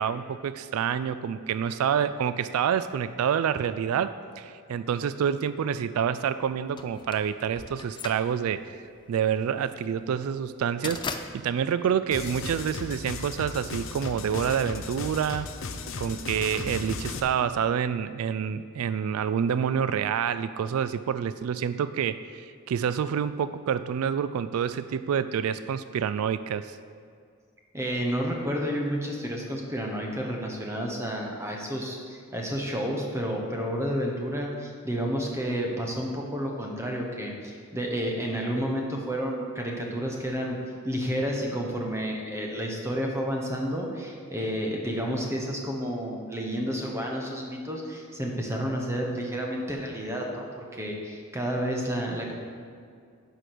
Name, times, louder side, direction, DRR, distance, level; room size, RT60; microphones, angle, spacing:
voice 1, 0.0-8.8 9.1-15.5 16.0-26.8, right 8 dB, 80° right, 14 dB, 0.3 m, -28 dB
sound 1, 6.8-12.9, left 5 dB, 20° left, 0.3 m, -39 dB
sound 2, 12.1-17.2, left 4 dB, 60° left, 0.6 m, -36 dB
voice 2, 27.7-40.6 40.8-52.3, equal, 15° right, 0 dB, 1.0 m, -30 dB
10.0 x 4.9 x 6.0 m, 2.2 s
head